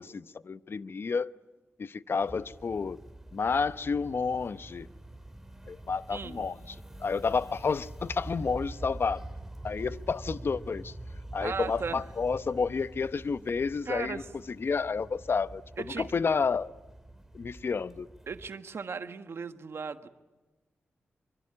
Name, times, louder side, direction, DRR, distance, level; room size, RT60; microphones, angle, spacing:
voice 1, 0.0-1.3 1.8-3.0 3.3-4.9 5.7-9.3 9.6-10.9 11.3-14.2 14.5-15.6 16.0-16.7 17.3-18.1, left 5 dB, 60° left, 0.8 m, -30 dB
sound 1, 2.2-18.5, right 1 dB, 10° right, 3.2 m, -45 dB
voice 2, 6.1-6.4 11.4-12.0 13.9-14.3 15.8-16.1 18.3-20.1, right 5 dB, 65° right, 1.5 m, -37 dB
25.0 x 24.0 x 8.8 m
cardioid pair, 60°, 4 cm